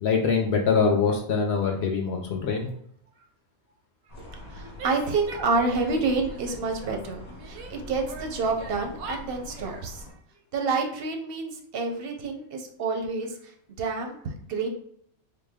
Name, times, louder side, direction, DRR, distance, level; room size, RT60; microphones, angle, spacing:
voice 1, 0.0-2.7, left 5 dB, 65° left, 2 dB, 0.7 m, -24 dB
sound 1, 4.1-10.1, left 1 dB, 35° left, 0.9 m, -43 dB
voice 2, 4.5-10.0 10.5-13.3 13.8-14.1 14.5-14.7, right 4 dB, 55° right, 3 dB, 0.6 m, -28 dB
Female speech woman speaking / Yell, 4.8-6.0 6.3-7.7 8.1-9.9, right 4 dB, 90° right, 1.1 m, -42 dB
3.8 x 2.1 x 3.4 m, 0.69 s
omnidirectional pair, 1.5 m